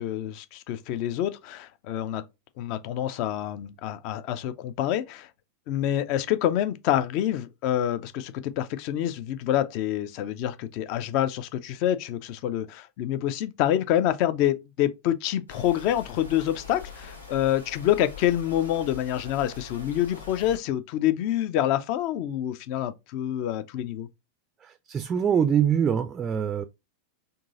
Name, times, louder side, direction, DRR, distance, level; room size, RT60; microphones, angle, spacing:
voice 1, 0.0-2.2 2.6-5.3 5.7-24.1, left 12 dB, 45° left, 0.4 m, -27 dB
sound 1, 15.5-20.6, left 5 dB, 80° left, 1.0 m, -43 dB
voice 2, 24.9-26.6, right 8 dB, 20° right, 0.3 m, -23 dB
3.8 x 2.6 x 2.4 m
figure-of-eight pair, 90°, 0 cm